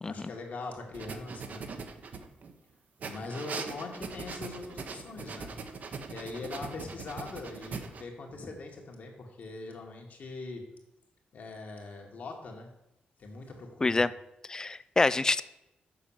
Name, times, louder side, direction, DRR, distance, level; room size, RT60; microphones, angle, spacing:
voice 1, 0.1-1.7 3.0-5.5 6.1-10.6 11.3-12.7 13.2-14.0, left 3 dB, 55° left, 1 dB, 2.0 m, -41 dB
sound 1, 0.9-2.5 3.0-8.0, right 5 dB, 55° right, 0.9 m, -41 dB
voice 2, 14.5-15.4, left 3 dB, 20° left, 16 dB, 0.3 m, -26 dB
6.9 x 6.0 x 7.3 m, 0.89 s
wide cardioid pair, 140°, 3 cm